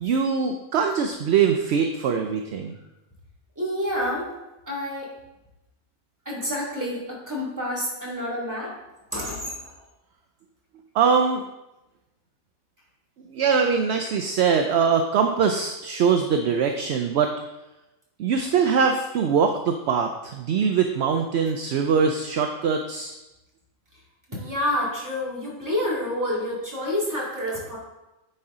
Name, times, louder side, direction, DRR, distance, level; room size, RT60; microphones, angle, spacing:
voice 1, 0.0-2.7 10.9-11.4 13.3-17.3 18.2-23.1, right 6 dB, 65° right, 5 dB, 0.7 m, -22 dB
voice 2, 3.6-4.4 4.7-5.1 6.3-8.8 9.1-9.7 24.3-27.8, left 1 dB, 15° right, -5 dB, 2.1 m, -28 dB
9.8 x 4.4 x 3.7 m, 0.98 s
omnidirectional pair, 1.5 m